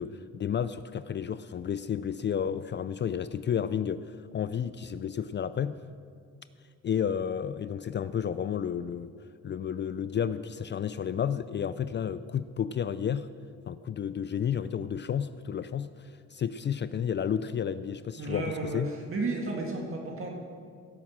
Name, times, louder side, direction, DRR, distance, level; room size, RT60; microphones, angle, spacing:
voice 1, 0.0-5.8 6.8-9.1 9.4-13.3 13.7-18.9, left 8 dB, 40° left, 14 dB, 0.4 m, -31 dB
voice 2, 18.2-20.3, right 3 dB, 45° right, 0 dB, 1.9 m, -33 dB
16.5 x 6.0 x 7.3 m, 2.2 s
cardioid pair, 90°, 30 cm